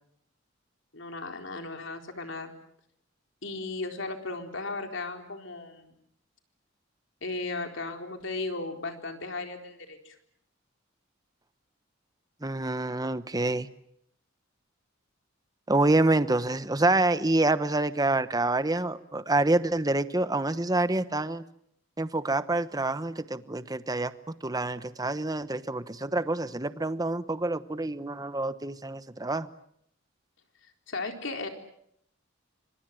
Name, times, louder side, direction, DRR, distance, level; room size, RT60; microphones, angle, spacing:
voice 1, 0.9-2.5 3.4-5.9 7.2-10.2 30.9-31.5, left 3 dB, 65° left, 4 dB, 4.1 m, -36 dB
voice 2, 12.4-13.7 15.7-21.4 22.0-24.1 24.4-29.5, right 2 dB, 20° right, 13 dB, 1.0 m, -27 dB
27.0 x 25.5 x 7.7 m, 0.71 s
head